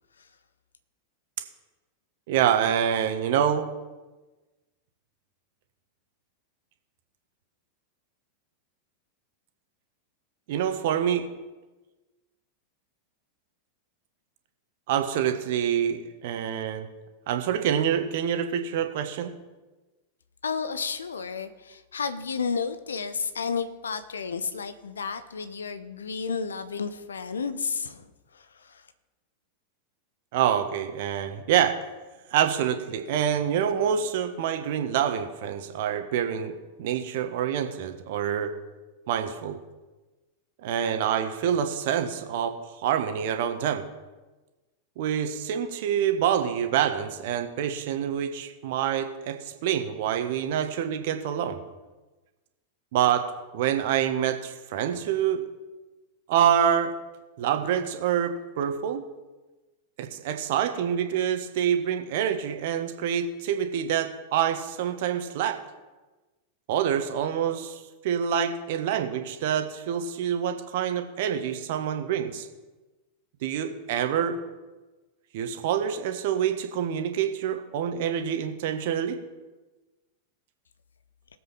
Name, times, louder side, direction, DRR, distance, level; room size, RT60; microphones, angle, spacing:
voice 1, 2.3-3.7 10.5-11.3 14.9-16.9 17.3-19.3 30.3-31.7 32.3-36.5 36.8-38.5 39.1-39.6 40.6-43.8 45.0-51.6 52.9-53.2 53.5-55.4 56.3-56.9 57.4-59.0 60.0-65.6 66.7-72.5 73.4-74.4 75.3-79.2, right 9 dB, 50° right, 7 dB, 1.5 m, -26 dB
voice 2, 20.4-28.8, left 5 dB, 70° left, 11 dB, 0.9 m, -32 dB
18.0 x 7.9 x 5.8 m, 1.2 s
figure-of-eight pair, 90°, 0 cm